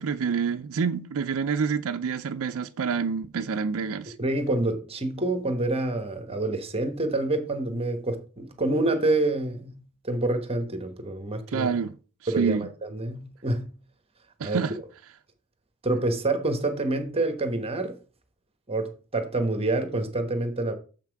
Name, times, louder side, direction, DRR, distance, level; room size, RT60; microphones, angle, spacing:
voice 1, 0.0-4.1 11.5-11.9 12.4-12.7 14.4-14.7, right 6 dB, 65° right, 0.4 m, -27 dB
voice 2, 4.2-11.7 12.3-13.7 14.4-14.6 15.8-18.0 18.7-20.7, right 2 dB, 25° right, 1.1 m, -27 dB
7.1 x 5.8 x 4.6 m
head